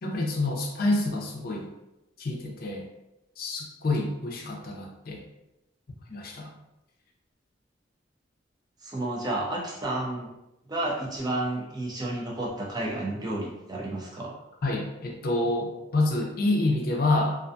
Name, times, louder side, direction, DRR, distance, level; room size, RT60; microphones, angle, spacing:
voice 1, 0.0-1.7 2.2-2.8 3.4-5.2 6.1-6.5 14.6-17.3, left 2 dB, 55° left, 1 dB, 0.5 m, -27 dB
voice 2, 8.8-10.3 10.7-14.3, right 1 dB, 20° right, -2 dB, 0.4 m, -31 dB
2.4 x 2.2 x 2.5 m, 0.92 s
head